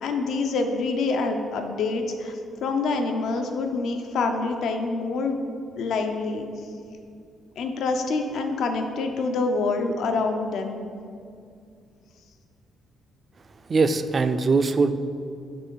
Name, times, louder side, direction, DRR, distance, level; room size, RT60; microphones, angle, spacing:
voice 1, 0.0-5.4 5.8-6.5 7.6-10.8, left 3 dB, 75° left, 5 dB, 0.6 m, -26 dB
voice 2, 13.7-14.9, right 4 dB, 35° right, 10 dB, 0.4 m, -21 dB
6.8 x 3.6 x 5.5 m, 2.4 s
cardioid pair, 90°, 0 cm